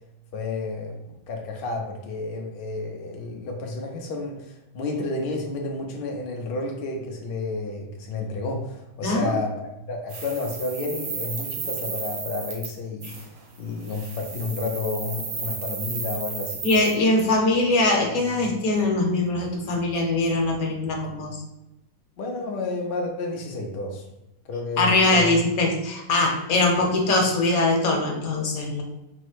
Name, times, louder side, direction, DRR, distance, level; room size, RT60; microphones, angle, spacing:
voice 1, 0.3-13.1 13.6-16.6 22.2-24.0 24.5-25.4, left 3 dB, 85° left, 1 dB, 0.5 m, -31 dB
voice 2, 9.0-9.3 13.0-13.1 16.6-21.4 24.8-28.8, left 2 dB, 60° left, 1 dB, 1.2 m, -22 dB
sound 1, 10.1-12.7 13.0-13.3 13.8-16.9, right 5 dB, 85° right, 1.6 m, -33 dB
4.6 x 2.1 x 4.6 m, 0.94 s
omnidirectional pair, 1.9 m